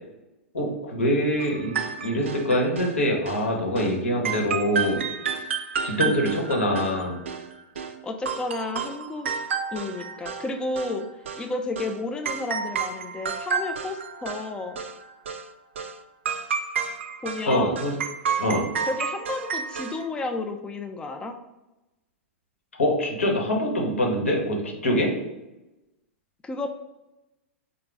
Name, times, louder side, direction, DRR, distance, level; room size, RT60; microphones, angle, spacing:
voice 1, 0.5-5.0 5.8-7.2 17.5-17.9 18.4-18.7 22.8-25.1, equal, 85° left, -1 dB, 1.1 m, -24 dB
sound 1, 1.4-3.0 3.3-3.5 3.8-4.0 4.3-8.0 8.3-10.5 10.8-11.5 11.8-12.0 12.3-14.5 14.8-15.0 15.3-15.5 15.8-16.0 16.3-20.1, right 6 dB, 70° right, 0.4 m, -31 dB
voice 2, 8.0-9.3 9.7-11.1 11.4-14.8 17.2-17.8 18.8-21.3 26.4-26.7, left 3 dB, 15° left, 5 dB, 0.3 m, -31 dB
3.9 x 2.2 x 3.3 m, 0.99 s
hypercardioid pair, 105°, 7 cm